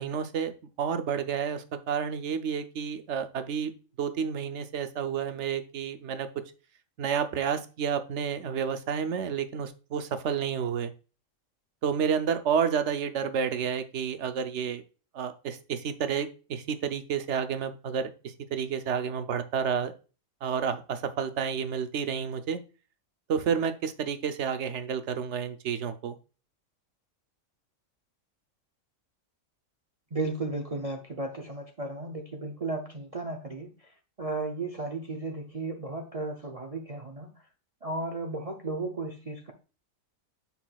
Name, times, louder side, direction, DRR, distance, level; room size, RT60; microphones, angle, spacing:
voice 1, 0.0-3.7 4.0-6.3 7.0-10.9 11.8-14.8 15.1-19.9 20.4-22.6 23.3-26.2, right 7 dB, 60° right, 10 dB, 1.0 m, -30 dB
voice 2, 30.1-33.7 34.2-37.3 37.8-39.5, right 2 dB, 35° right, 3 dB, 0.7 m, -34 dB
7.2 x 5.9 x 2.4 m, 0.34 s
omnidirectional pair, 1.4 m